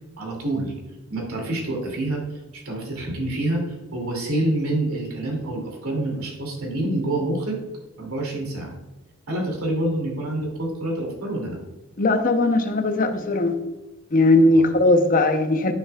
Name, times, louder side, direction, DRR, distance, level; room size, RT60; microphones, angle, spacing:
voice 1, 0.2-0.7 1.1-7.6 8.0-8.7 9.3-11.6 14.5-14.6, right 1 dB, 85° right, 0 dB, 2.6 m, -27 dB
voice 2, 12.0-13.6 14.1-15.7, left 2 dB, 40° left, 7 dB, 0.8 m, -18 dB
10.0 x 6.7 x 2.4 m, 1.0 s
head